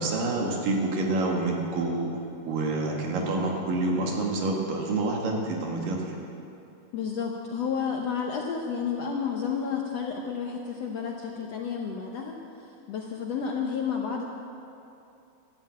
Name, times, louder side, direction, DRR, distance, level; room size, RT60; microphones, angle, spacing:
voice 1, 0.0-2.1 2.5-6.2, right 2 dB, 65° right, 0 dB, 3.5 m, -27 dB
voice 2, 6.9-14.2, left 6 dB, 80° left, 1 dB, 1.5 m, -31 dB
12.5 x 12.5 x 8.6 m, 2.7 s
omnidirectional pair, 4.3 m